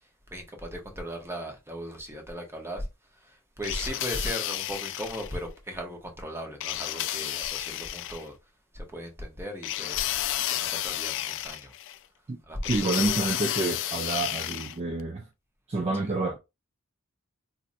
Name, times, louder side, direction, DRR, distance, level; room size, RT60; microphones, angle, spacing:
voice 1, 0.3-2.9 3.2-8.3 8.7-10.2 10.5-11.7 12.5-12.9, equal, 10° right, 0.8 m, -37 dB
sound 1, 3.6-5.4 6.6-8.2 9.6-12.0 12.6-14.8, left 13 dB, 60° left, 0.3 m, -31 dB
voice 2, 12.6-15.3 15.7-16.4, right 2 dB, 30° right, 0.4 m, -28 dB
4.1 x 2.6 x 2.5 m
head